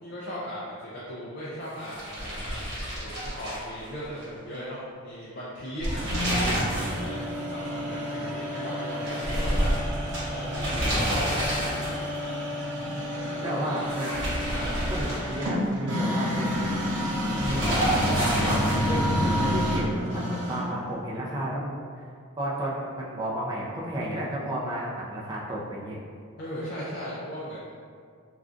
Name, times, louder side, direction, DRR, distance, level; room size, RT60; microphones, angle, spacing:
voice 1, 0.0-2.6 2.9-9.7 10.3-11.5 12.8-14.0 14.5-14.8 26.4-27.7, equal, 45° left, -8 dB, 0.4 m, -38 dB
sound 1, 1.8-4.3 4.5-4.6 5.6-7.0 7.3-7.4 9.0-12.2 13.8-15.7 17.3-19.0, equal, 50° right, 1.1 m, -29 dB
sound 2, 5.8-20.8, equal, 85° right, 0.7 m, -30 dB
voice 2, 10.6-10.9 13.4-14.1 14.9-16.8 17.4-22.1 22.4-26.0, right 1 dB, 20° right, -6 dB, 0.4 m, -32 dB
2.4 x 2.2 x 3.7 m, 2.2 s
head